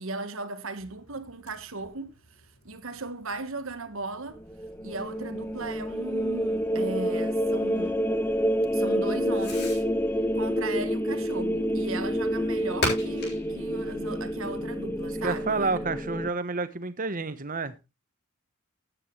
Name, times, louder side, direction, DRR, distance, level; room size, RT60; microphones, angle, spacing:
voice 1, 0.0-4.4 4.8-8.0 8.7-9.9 10.3-15.9, right 3 dB, 60° right, 1.5 m, -37 dB
Fireworks, 0.7-15.3, left 2 dB, 50° left, 7.5 m, -42 dB
sound 1, 4.4-16.3, equal, 10° left, 0.7 m, -28 dB
voice 2, 15.2-17.7, right 3 dB, 40° right, 1.1 m, -29 dB
13.0 x 10.0 x 3.2 m
head